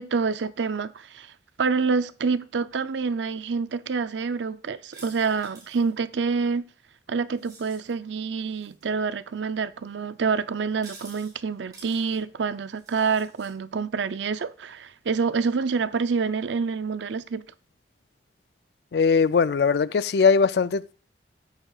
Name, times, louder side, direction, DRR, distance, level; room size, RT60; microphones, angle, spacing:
voice 1, 0.0-1.3 1.6-6.6 7.1-17.5, right 5 dB, 85° right, 0.5 m, -27 dB
sound 1, 4.9-5.9 7.3-7.9 8.5-8.8 10.7-11.3 11.7-12.2 12.7-13.5, right 3 dB, 20° right, 3.6 m, -49 dB
voice 2, 18.9-20.9, left 5 dB, 65° left, 0.4 m, -20 dB
13.5 x 9.0 x 2.4 m
head